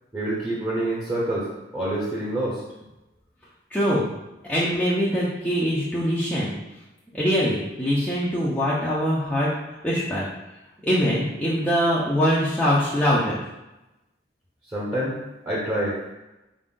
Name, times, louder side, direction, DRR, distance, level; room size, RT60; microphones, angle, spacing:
voice 1, 0.1-2.6 14.7-15.2 15.4-16.0, right 1 dB, 15° right, -8 dB, 0.9 m, -27 dB
voice 2, 3.7-4.1 4.5-6.5 7.1-9.5 9.8-10.3 10.8-13.4, equal, 5° left, -10 dB, 0.6 m, -23 dB
4.7 x 2.6 x 3.7 m, 0.97 s
head